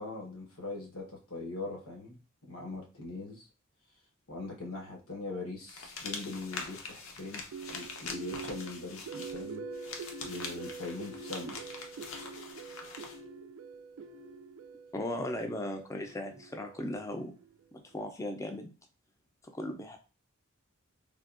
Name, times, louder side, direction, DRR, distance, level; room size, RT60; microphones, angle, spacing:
voice 1, 0.0-2.2 2.4-3.4 4.3-7.5 7.7-9.6 10.2-11.6, left 3 dB, 90° left, 0 dB, 1.0 m, -41 dB
sound 1, 5.7-13.2, left 4 dB, 70° left, 0.6 m, -43 dB
sound 2, 7.5-17.6, right 5 dB, 90° right, 0.3 m, -45 dB
voice 2, 14.9-17.3 17.9-18.7 19.5-20.0, left 1 dB, 15° left, 4 dB, 0.4 m, -37 dB
3.5 x 2.3 x 2.4 m, 0.33 s
head